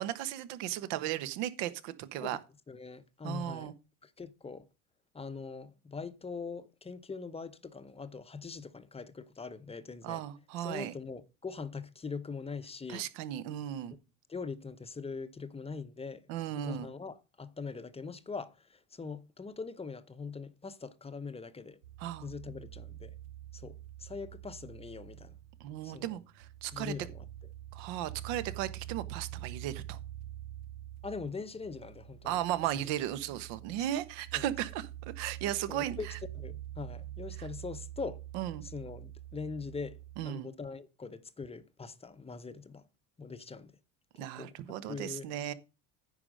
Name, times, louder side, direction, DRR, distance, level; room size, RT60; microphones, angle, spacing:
voice 1, 0.0-2.4 3.2-3.7 10.0-10.9 12.9-13.9 16.3-16.9 22.0-22.3 25.6-26.9 27.7-30.0 32.2-36.0 38.3-38.6 40.2-40.5 44.2-45.5, right 12 dB, 65° right, 1.3 m, -36 dB
voice 2, 2.7-3.8 4.0-4.7 5.1-10.3 10.6-13.1 14.3-16.3 16.6-21.8 22.2-23.1 23.5-25.4 25.8-26.2 26.7-27.3 31.0-32.4 32.7-32.9 34.3-34.4 35.7-36.1 36.3-38.2 38.6-40.0 40.2-42.9 43.2-43.7 44.2-44.6 44.9-45.5, left 4 dB, 15° left, 0.8 m, -42 dB
sound 1, 21.8-40.3, right 13 dB, 85° right, 0.7 m, -46 dB
9.8 x 5.1 x 6.4 m
supercardioid pair, 110°, 45 cm